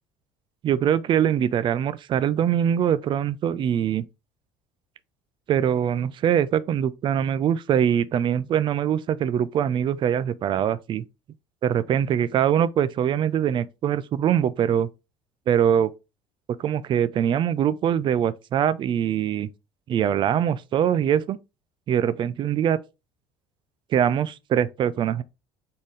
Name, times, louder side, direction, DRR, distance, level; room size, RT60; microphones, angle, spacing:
voice 1, 0.6-4.1 5.5-11.0 11.6-14.9 15.5-15.9 16.6-19.5 19.9-21.4 21.9-22.8 23.9-25.2, right 9 dB, 45° right, 0.4 m, -23 dB
4.1 x 3.8 x 3.2 m
supercardioid pair, 95°, 11 cm